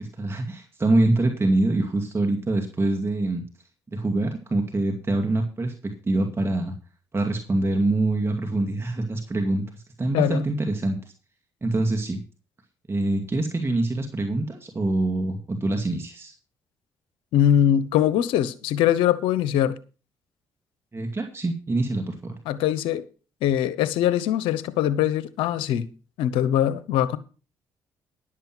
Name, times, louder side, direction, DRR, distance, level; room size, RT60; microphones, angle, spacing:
voice 1, 0.0-3.4 3.9-5.7 6.0-6.7 7.1-11.1 11.6-12.2 12.9-16.3 20.9-22.4, right 2 dB, 30° right, 2.2 m, -25 dB
voice 2, 17.3-19.8 22.5-23.0 23.4-25.9 26.2-27.2, left 11 dB, 85° left, 0.8 m, -22 dB
11.0 x 7.7 x 6.0 m
supercardioid pair, 60°, 9 cm